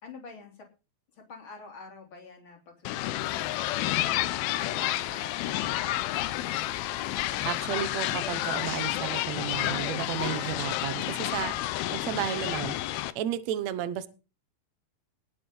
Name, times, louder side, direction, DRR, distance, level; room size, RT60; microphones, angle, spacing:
voice 1, 0.0-0.7 1.1-4.0 4.6-6.4, left 4 dB, 30° left, 3 dB, 3.5 m, -47 dB
sound 1, 2.8-13.1, left 15 dB, 80° left, 2.5 m, -30 dB
voice 2, 7.2-12.7 13.1-14.1, right 11 dB, 90° right, 13 dB, 1.5 m, -33 dB
19.5 x 7.3 x 5.5 m, 0.33 s
omnidirectional pair, 4.6 m